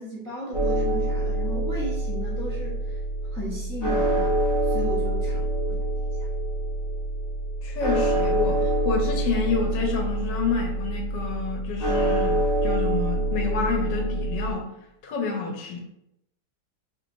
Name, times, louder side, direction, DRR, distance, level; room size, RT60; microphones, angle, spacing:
voice 1, 0.0-3.0 3.3-4.3 4.6-5.4, equal, 5° left, -9 dB, 0.4 m, -35 dB
sound 1, 0.5-14.5, right 1 dB, 35° left, 1.2 m, -26 dB
voice 2, 7.6-14.7 15.0-15.8, left 5 dB, 70° left, 2 dB, 1.3 m, -29 dB
3.2 x 2.9 x 2.6 m, 0.81 s
omnidirectional pair, 2.0 m